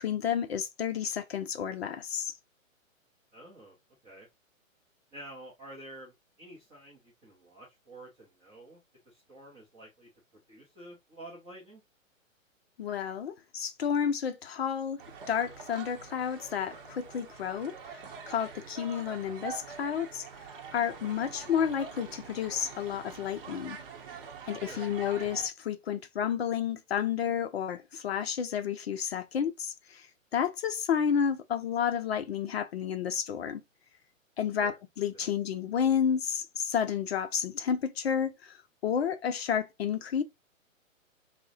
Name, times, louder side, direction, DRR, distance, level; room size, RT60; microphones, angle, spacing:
voice 1, 0.0-2.3 12.8-15.0 15.3-18.0 18.3-20.2 20.7-23.8 24.5-30.1 30.3-33.6 34.4-38.6 38.8-40.2, left 8 dB, 50° left, 0.5 m, -31 dB
voice 2, 3.3-3.8 4.0-4.3 5.1-8.8 9.0-11.8 18.6-18.7 24.7-24.9 34.6-34.8 35.1-35.3, right 1 dB, 10° right, 0.6 m, -49 dB
sound 1, 15.0-25.5, right 5 dB, 40° right, 0.8 m, -45 dB
4.5 x 2.1 x 2.6 m
hypercardioid pair, 145°, 40 cm